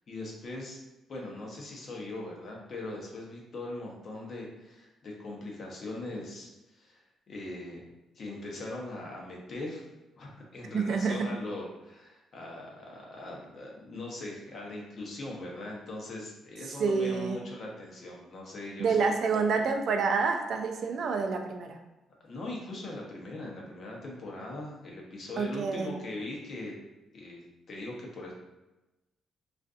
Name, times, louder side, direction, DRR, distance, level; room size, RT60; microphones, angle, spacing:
voice 1, 0.1-0.8 1.1-7.8 8.1-9.8 10.2-19.6 22.2-26.8 27.1-27.4 27.7-28.3, left 2 dB, 50° left, -2 dB, 0.7 m, -40 dB
voice 2, 10.7-11.2 16.8-17.4 18.8-21.8 25.4-25.9, right 5 dB, 65° right, 4 dB, 0.3 m, -28 dB
2.4 x 2.4 x 2.4 m, 1.0 s
cardioid pair, 90°, 0 cm